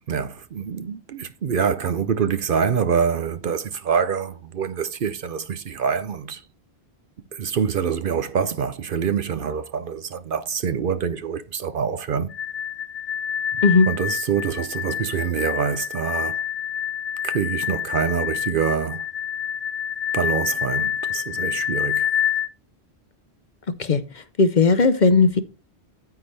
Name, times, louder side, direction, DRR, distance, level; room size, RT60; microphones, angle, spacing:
voice 1, 0.1-6.4 7.3-12.3 13.5-16.4 17.2-19.0 20.1-22.1, right 7 dB, 60° right, 0.8 m, -25 dB
sound 1, 12.3-22.5, left 9 dB, 65° left, 1.3 m, -27 dB
voice 2, 23.8-25.4, left 4 dB, 50° left, 0.8 m, -17 dB
9.4 x 8.6 x 3.2 m
omnidirectional pair, 1.1 m